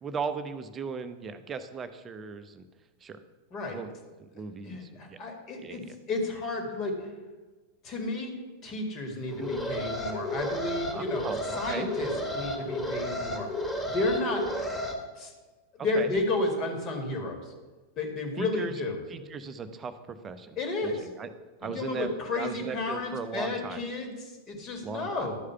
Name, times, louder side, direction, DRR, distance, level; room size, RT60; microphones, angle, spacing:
voice 1, 0.0-2.6 3.0-3.2 3.7-3.9 4.2-5.2 5.6-5.9 9.4-9.5 10.9-11.9 15.9-16.1 18.4-18.7 19.1-21.3 21.6-22.1 22.3-23.8 24.8-25.3, right 5 dB, 20° right, 9 dB, 0.7 m, -37 dB
voice 2, 4.6-7.0 7.8-8.4 8.6-11.3 11.6-13.5 13.9-14.5 15.2-15.3 15.8-17.4 18.0-19.0 20.6-21.1 21.6-25.4, left 2 dB, 35° left, 3 dB, 1.8 m, -32 dB
Alarm, 9.3-14.9, left 1 dB, 15° left, 1.7 m, -33 dB
11.5 x 4.9 x 5.7 m, 1.3 s
figure-of-eight pair, 90°, 0 cm